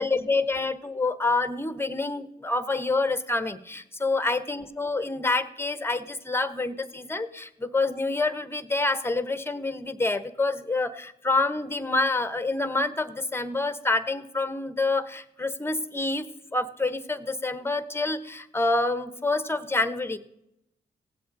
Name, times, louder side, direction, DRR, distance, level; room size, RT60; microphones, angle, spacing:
voice 1, 0.0-20.2, left 3 dB, 10° left, 12 dB, 1.0 m, -27 dB
17.0 x 7.7 x 4.0 m, 0.82 s
cardioid pair, 60°, 19 cm